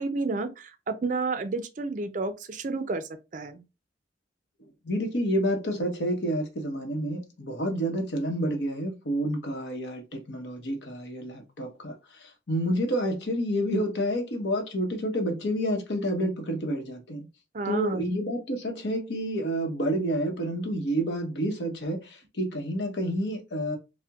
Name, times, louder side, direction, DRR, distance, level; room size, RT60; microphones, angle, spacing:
voice 1, 0.0-3.6 17.5-18.2, right 3 dB, 45° right, 0.4 m, -31 dB
voice 2, 4.8-17.2 17.6-23.8, equal, 70° left, 0.9 m, -29 dB
4.3 x 2.1 x 2.3 m
head